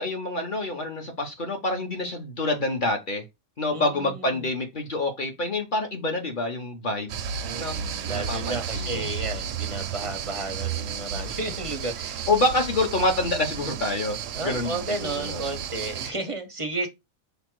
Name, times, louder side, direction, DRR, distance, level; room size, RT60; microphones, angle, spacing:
voice 1, 0.0-3.2 3.6-7.2 7.6-7.8 8.1-9.1 12.3-14.7 15.0-15.4, left 2 dB, 40° left, 0.9 m, -27 dB
voice 2, 3.7-4.5 7.4-12.3 14.3-16.9, right 2 dB, 35° right, 0.5 m, -33 dB
sound 1, 7.1-16.1, right 8 dB, 70° right, 0.8 m, -33 dB
5.1 x 2.2 x 4.6 m
omnidirectional pair, 1.5 m